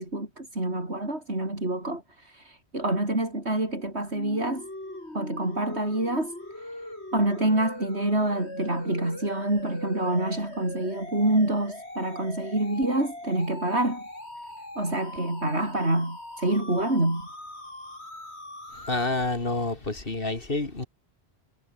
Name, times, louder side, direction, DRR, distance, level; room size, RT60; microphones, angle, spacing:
voice 1, 0.0-4.7 5.1-14.0 14.8-17.2, right 1 dB, 80° right, 7.1 m, -27 dB
sound 1, 4.1-19.1, left 1 dB, 85° left, 7.4 m, -41 dB
voice 2, 18.8-20.9, left 2 dB, 55° left, 3.0 m, -28 dB
omnidirectional pair, 1.1 m